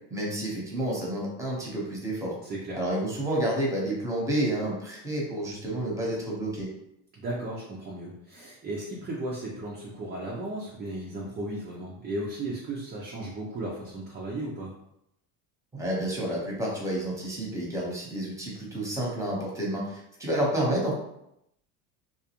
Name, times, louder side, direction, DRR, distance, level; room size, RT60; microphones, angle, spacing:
voice 1, 0.1-2.3 2.7-6.7 15.7-20.9, right 1 dB, 5° right, -3 dB, 0.9 m, -30 dB
voice 2, 2.4-2.8 7.1-14.7, right 1 dB, 20° right, -4 dB, 0.4 m, -35 dB
2.4 x 2.3 x 2.9 m, 0.78 s
supercardioid pair, 100°, 48 cm